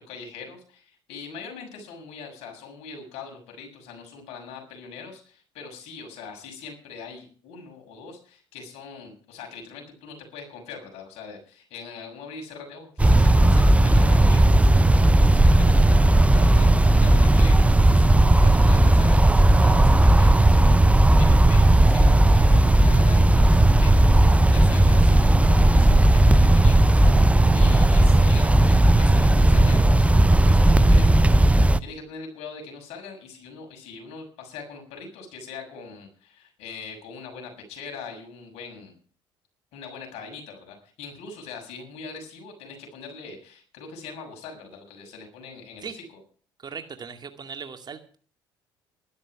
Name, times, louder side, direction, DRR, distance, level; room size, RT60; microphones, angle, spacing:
voice 1, 0.0-39.0 39.7-46.0, left 5 dB, 65° left, 3 dB, 6.6 m, -42 dB
sound 1, 13.0-31.8, right 1 dB, 10° right, 0.8 m, -16 dB
voice 2, 46.6-48.2, right 6 dB, 35° right, 7 dB, 2.2 m, -38 dB
13.0 x 12.5 x 6.0 m, 0.43 s
hypercardioid pair, 55°, 12 cm